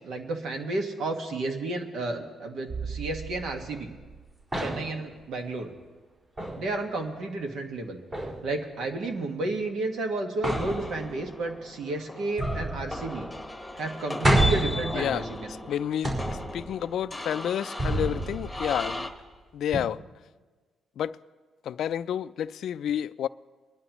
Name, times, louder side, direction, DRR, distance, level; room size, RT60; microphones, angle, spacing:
voice 1, 0.0-3.9 4.6-5.7 6.5-8.0 8.4-13.3 13.8-15.5, right 2 dB, 75° right, 1.5 m, -32 dB
sound 1, 2.7-4.1 4.5-5.1 6.4-6.7 8.1-8.5 10.4-11.3 12.4-13.4 13.7-13.8 14.2-15.6 16.0-16.8 17.8-19.1 19.7-19.8, right 1 dB, 40° right, 4.4 m, -29 dB
sound 2, 10.4-19.1, left 1 dB, 5° left, 1.2 m, -37 dB
voice 2, 15.7-16.2 16.5-19.1 19.5-20.0 21.0-21.2 21.7-23.3, left 10 dB, 70° left, 0.3 m, -30 dB
23.0 x 11.0 x 3.0 m
cardioid pair, 90°, 0 cm